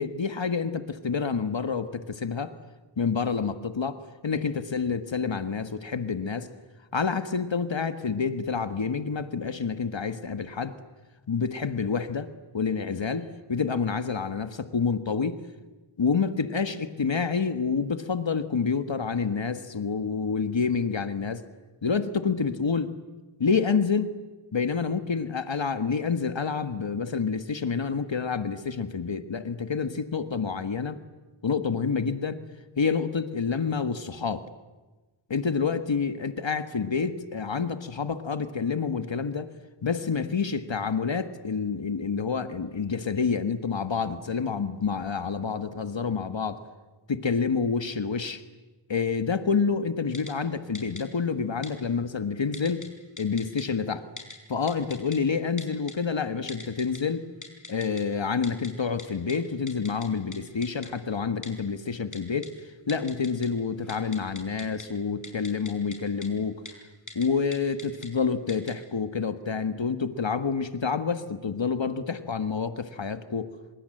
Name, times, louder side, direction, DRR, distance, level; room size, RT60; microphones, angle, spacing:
voice 1, 0.0-2.5 3.0-6.5 6.9-10.7 11.3-15.4 16.0-21.4 21.8-22.9 23.4-24.1 24.5-31.0 31.4-32.4 32.8-34.4 35.3-39.5 39.8-46.6 47.1-48.4 48.9-52.8 53.2-54.0 54.5-57.2 57.7-62.5 62.9-66.6 67.1-73.5, left 5 dB, 65° left, 11 dB, 1.5 m, -28 dB
Typing, 50.1-50.3 50.7-51.0 51.6-51.7 52.5-52.9 53.2-53.6 54.2-54.3 54.7-55.2 55.6-55.9 56.5-57.0 57.4-58.0 58.4-58.7 59.0-59.1 59.3-59.4 59.7-60.1 60.3-60.4 60.6-60.9 61.4-61.5 62.1-62.5 62.9-63.5 63.8-64.8 65.2-66.0 66.2-66.3 66.7-66.8 67.1-67.3 67.5-68.1 68.5-68.7, left 3 dB, 40° left, 5.7 m, -41 dB
26.5 x 26.0 x 7.8 m, 1.2 s
wide cardioid pair, 45°, 48 cm